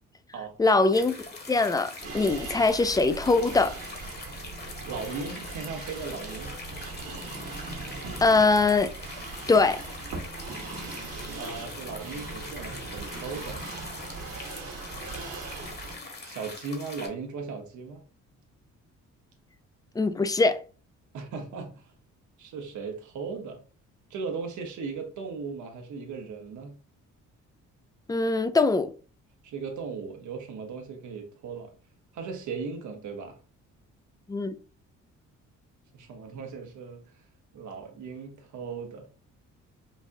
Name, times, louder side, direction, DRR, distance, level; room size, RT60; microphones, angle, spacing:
voice 1, 0.6-1.1 1.5-3.7 8.2-8.9 9.5-9.8 20.0-20.6 28.1-28.9 34.3-34.6, left 3 dB, 15° left, 0.3 m, -22 dB
sound 1, 0.9-17.1, left 3 dB, 35° left, 1.2 m, -43 dB
sound 2, 2.0-15.9, right 3 dB, 55° right, 1.2 m, -40 dB
voice 2, 4.8-6.6 11.3-13.6 16.2-18.0 21.1-21.8 22.4-23.6 24.1-26.8 29.4-31.7 32.1-33.4 35.9-37.0 37.5-39.1, right 5 dB, 75° right, 1.1 m, -37 dB
5.2 x 2.4 x 2.6 m
cardioid pair, 90°, 30 cm